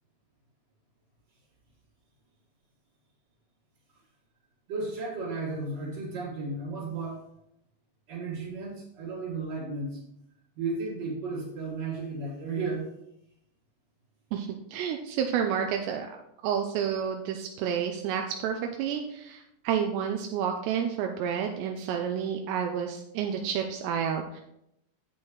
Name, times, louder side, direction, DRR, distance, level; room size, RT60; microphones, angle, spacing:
voice 1, 4.7-7.2 8.1-10.0 10.6-12.9, right 3 dB, 50° right, -8 dB, 2.2 m, -34 dB
voice 2, 14.3-16.2 16.4-24.4, right 8 dB, 85° right, 4 dB, 2.6 m, -30 dB
10.5 x 8.1 x 3.1 m, 0.80 s
omnidirectional pair, 5.4 m